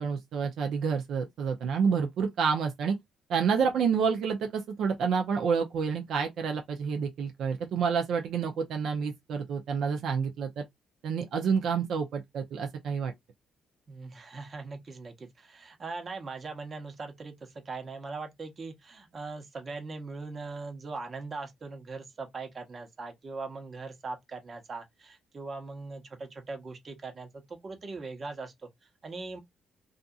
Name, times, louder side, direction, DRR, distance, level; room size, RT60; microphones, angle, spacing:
voice 1, 0.0-3.0 3.3-10.7 11.0-13.1, right 6 dB, 75° right, 0.5 m, -29 dB
voice 2, 13.9-29.4, right 3 dB, 40° right, 0.9 m, -40 dB
2.7 x 2.4 x 2.3 m
cardioid pair, 90°, 0 cm